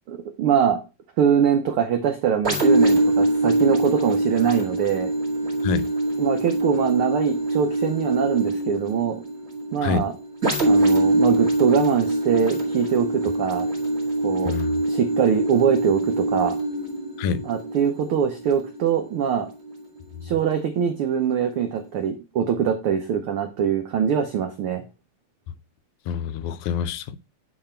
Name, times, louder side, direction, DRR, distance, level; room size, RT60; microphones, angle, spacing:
voice 1, 0.1-0.8 1.2-5.1 6.2-9.2 9.7-10.1 10.6-13.7 14.2-14.6 14.9-16.6 17.5-19.5 20.2-24.8, right 8 dB, 85° right, 1.2 m, -23 dB
sound 1, 2.4-20.0 20.5-20.6, right 1 dB, 25° right, 1.8 m, -24 dB
voice 2, 14.5-14.8 17.2-17.4 20.2-20.3 25.5-25.6 26.1-27.2, left 6 dB, 85° left, 1.9 m, -27 dB
8.8 x 3.3 x 4.3 m
omnidirectional pair, 3.3 m